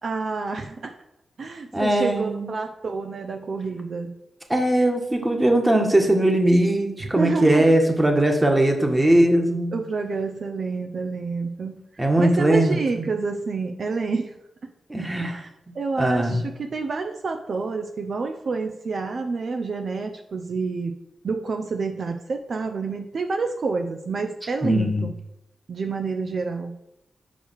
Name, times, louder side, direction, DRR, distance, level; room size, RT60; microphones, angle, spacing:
voice 1, 0.0-0.9 1.4-4.1 7.0-7.7 9.7-11.8 12.2-14.4 15.2-15.5 15.7-20.9 21.2-25.1 25.7-26.7, right 4 dB, 65° right, 4 dB, 0.7 m, -28 dB
voice 2, 1.7-2.5 4.5-9.8 12.0-13.0 14.9-16.4 24.6-25.1, right 1 dB, 20° right, 3 dB, 1.6 m, -20 dB
5.1 x 4.8 x 6.3 m, 0.86 s
cardioid pair, 55°, 0 cm